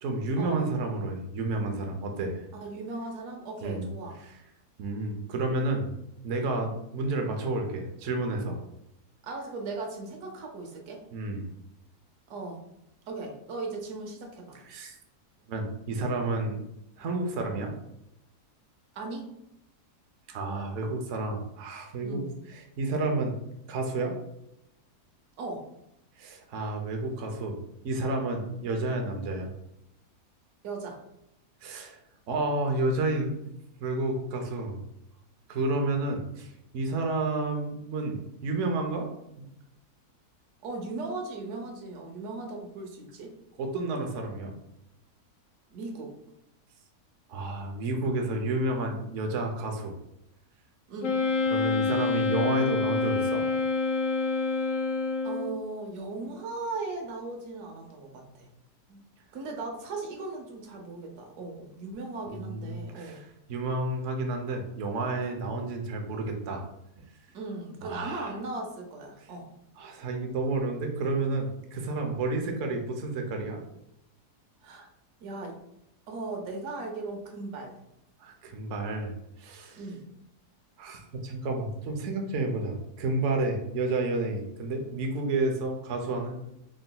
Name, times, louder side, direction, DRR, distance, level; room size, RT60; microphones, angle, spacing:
voice 1, 0.0-2.5 3.6-3.9 4.2-4.3 4.8-5.9 6.2-8.6 11.1-11.5 14.6-14.9 15.5-16.6 17.0-17.7 20.3-23.4 23.7-24.1 26.2-27.6 27.8-29.5 31.6-32.0 32.3-33.5 33.8-34.8 35.5-39.1 39.4-39.5 43.6-44.6 47.3-50.0 51.5-53.4 62.3-63.2 63.5-66.6 67.8-68.3 69.8-73.6 78.2-79.1 79.4-79.8 80.8-86.4, right 2 dB, 60° right, 3 dB, 0.9 m, -30 dB
voice 2, 2.5-4.2 9.2-11.0 12.3-12.6 13.1-14.6 18.9-19.3 22.0-22.3 25.4-25.6 30.6-31.0 40.6-43.3 45.7-46.1 50.9-51.2 55.2-58.5 58.9-59.0 59.3-63.2 67.3-69.5 74.6-74.9 75.2-75.6 76.1-77.8 79.7-80.1, right 3 dB, 80° right, 2 dB, 1.3 m, -37 dB
Wind instrument woodwind instrument, 51.0-55.7, left 4 dB, 65° left, 0.8 m, -27 dB
4.0 x 3.8 x 2.2 m, 0.82 s
omnidirectional pair, 1.7 m